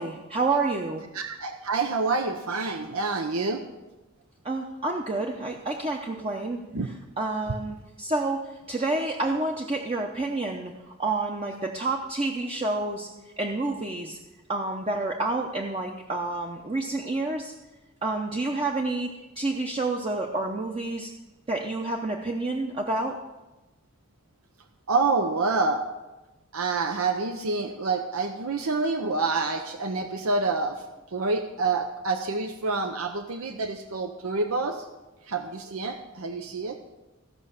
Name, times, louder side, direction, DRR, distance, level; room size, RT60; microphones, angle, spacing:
voice 1, 0.0-1.0 4.4-6.6 7.2-10.7 11.0-13.1 13.4-14.2 14.5-17.5 18.0-21.1 21.5-23.2, right 2 dB, 25° right, 1 dB, 0.7 m, -29 dB
voice 2, 1.1-3.6 6.7-6.9 24.9-25.8 26.5-30.8 31.1-34.9 35.3-36.8, right 3 dB, 85° right, 6 dB, 0.8 m, -27 dB
15.5 x 5.7 x 6.5 m, 1.1 s
head